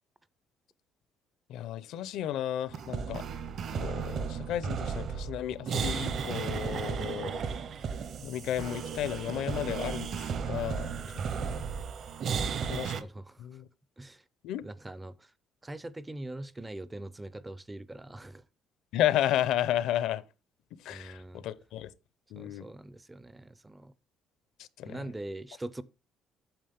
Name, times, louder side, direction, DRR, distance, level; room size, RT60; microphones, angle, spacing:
voice 1, 1.5-3.2 3.8-7.3 8.2-11.0 11.3-11.6 12.7-13.0 13.4-13.7 14.4-14.6 18.9-20.2 20.8-21.9 22.3-22.7 24.6-25.0, left 12 dB, 70° left, 0.7 m, -33 dB
sound 1, 2.7-13.0, right 6 dB, 40° right, 0.7 m, -34 dB
voice 2, 12.3-12.7 13.0-13.6 14.0-14.2 14.6-15.3 15.6-18.4 20.9-21.4 22.3-23.9 24.8-25.8, right 1 dB, 10° right, 0.4 m, -42 dB
9.0 x 7.2 x 3.5 m
cardioid pair, 170°, 0 cm